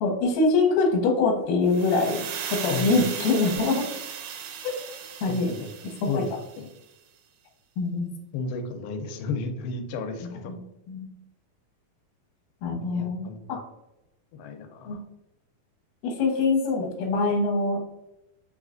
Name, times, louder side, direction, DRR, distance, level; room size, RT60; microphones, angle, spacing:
voice 1, 0.0-3.8 4.6-4.8 5.2-5.5 6.0-6.2 7.8-8.1 10.5-10.6 10.9-11.1 12.6-13.6 14.9-15.0 16.0-18.0, left 3 dB, 70° left, 1 dB, 2.3 m, -24 dB
Soft Swish Air Release, 1.7-6.7, right 8 dB, 85° right, 1.8 m, -36 dB
voice 2, 2.7-3.0 5.3-5.6 6.1-6.3 6.6-6.7 8.3-10.5 12.7-13.6 14.3-15.0, left 3 dB, 90° left, 6 dB, 2.4 m, -33 dB
5.4 x 3.2 x 2.5 m, 0.93 s
omnidirectional pair, 4.2 m